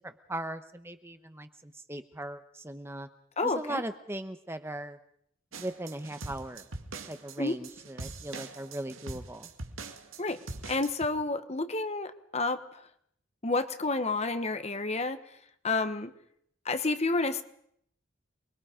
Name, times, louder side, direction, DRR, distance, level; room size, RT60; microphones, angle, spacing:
voice 1, 0.0-3.1 3.4-5.0 5.5-6.6 7.1-9.5, right 1 dB, 10° right, 9 dB, 1.0 m, -39 dB
voice 2, 3.4-3.8 7.4-7.6 10.2-10.4 10.7-12.6 13.4-15.2 15.6-16.1 16.6-17.4, left 3 dB, 30° left, 10 dB, 1.1 m, -30 dB
sound 1, 5.5-11.0, right 3 dB, 85° right, 2.1 m, -43 dB
28.0 x 21.5 x 5.1 m, 0.69 s
head